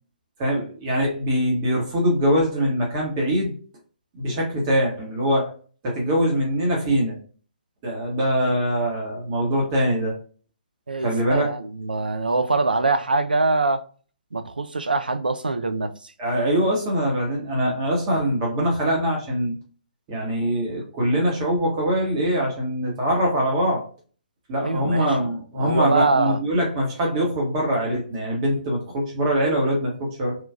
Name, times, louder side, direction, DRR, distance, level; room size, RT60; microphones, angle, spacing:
voice 1, 0.4-3.5 4.1-5.5 5.8-7.2 7.8-10.1 11.0-11.5 16.2-19.6 20.1-23.8 24.5-30.4, equal, 30° right, 1.0 m, -23 dB
voice 2, 10.9-13.8 14.3-16.1 24.6-25.2 25.6-26.4, right 3 dB, 75° right, 0.4 m, -23 dB
3.0 x 2.4 x 2.3 m
figure-of-eight pair, 130°, 5 cm